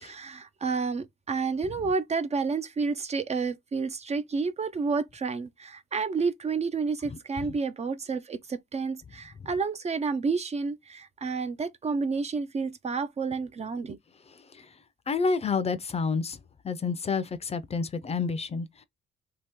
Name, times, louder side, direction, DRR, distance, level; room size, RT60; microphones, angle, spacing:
voice 1, 0.0-14.0, right 4 dB, 35° right, 0.5 m, -30 dB
voice 2, 15.1-16.4 16.6-18.7, left 4 dB, 30° left, 0.5 m, -28 dB
2.9 x 2.9 x 3.5 m
cardioid pair, 90°, 20 cm